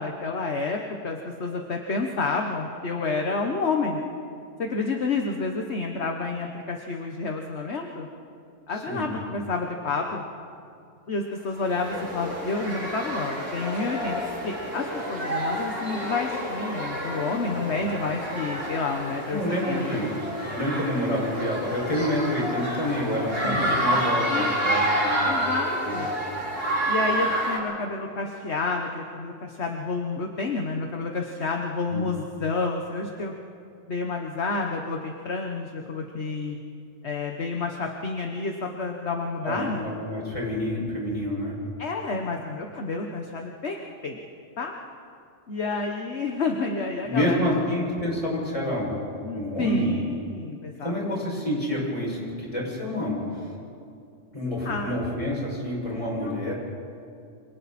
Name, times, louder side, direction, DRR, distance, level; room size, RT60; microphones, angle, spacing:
voice 1, 0.0-4.0 4.6-8.1 8.7-10.2 11.1-20.0 23.4-24.0 24.3-24.9 25.3-26.1 26.9-33.3 33.9-36.6 37.0-39.9 41.8-44.2 44.6-44.7 45.5-47.5 49.2-51.0 54.6-54.9 56.1-56.5, left 3 dB, 60° left, 2 dB, 1.5 m, -30 dB
sound 1, 11.6-27.6, equal, 85° right, 7.9 m, -29 dB
voice 2, 19.3-20.1 20.5-25.3 25.8-26.0 31.9-32.1 39.4-41.5 47.0-49.0 49.3-50.0 50.8-53.5 54.3-56.5, equal, 25° left, -4 dB, 6.4 m, -28 dB
28.0 x 27.0 x 4.3 m, 2.5 s
omnidirectional pair, 1.3 m